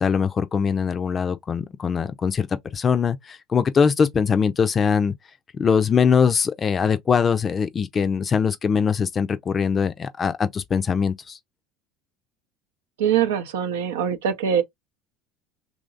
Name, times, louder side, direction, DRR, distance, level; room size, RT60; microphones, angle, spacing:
voice 1, 0.0-2.5 2.7-5.1 5.5-11.4, left 6 dB, 35° left, 0.5 m, -22 dB
voice 2, 13.0-14.6, right 8 dB, 80° right, 0.6 m, -23 dB
3.0 x 2.6 x 2.4 m
hypercardioid pair, 75°, 0 cm